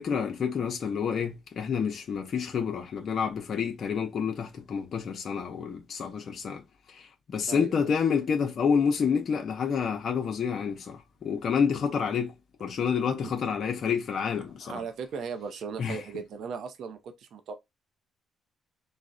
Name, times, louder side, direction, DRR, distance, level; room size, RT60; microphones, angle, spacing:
voice 1, 0.0-6.6 6.9-12.3 12.6-14.8 15.8-16.0, left 6 dB, 55° left, 0.5 m, -28 dB
voice 2, 7.5-7.9 13.2-13.3 14.6-17.5, right 5 dB, 70° right, 0.5 m, -37 dB
3.9 x 2.1 x 2.5 m
cardioid pair, 90°, 0 cm